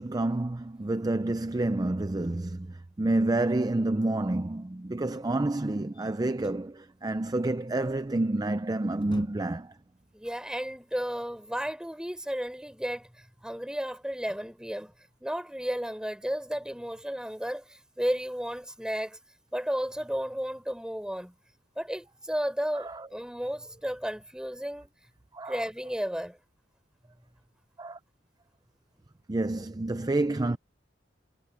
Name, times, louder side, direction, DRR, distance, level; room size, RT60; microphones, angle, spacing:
voice 1, 0.0-9.7 22.7-23.1 25.3-25.6 27.8-28.0 29.3-30.6, right 2 dB, 20° right, 0.5 m, -29 dB
sound 1, 5.9-6.7 8.3-8.5 8.8-9.7, equal, 25° left, 7.7 m, -50 dB
voice 2, 10.1-14.9 15.2-19.2 19.5-21.3 21.8-24.9 25.5-26.4, equal, 5° right, 4.0 m, -33 dB
head